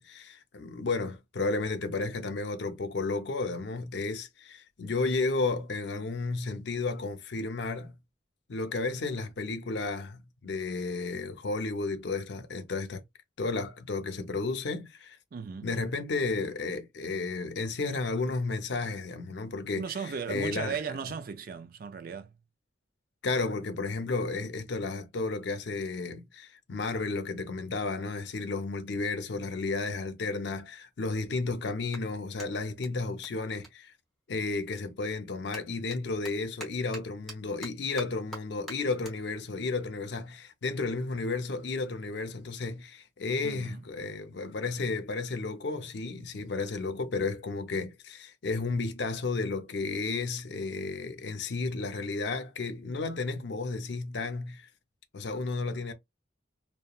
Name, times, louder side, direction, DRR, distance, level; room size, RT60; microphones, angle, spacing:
voice 1, 0.0-8.0 8.5-13.0 13.4-15.2 15.6-20.8 23.2-33.9 34.3-54.6 55.1-55.9, left 3 dB, 70° left, 0.5 m, -33 dB
voice 2, 15.3-15.7 19.8-22.3 43.4-43.8, right 6 dB, 50° right, 0.4 m, -36 dB
Clapping, 30.5-34.6 34.9-41.5, equal, ahead, 0.9 m, -49 dB
2.9 x 2.1 x 2.3 m
head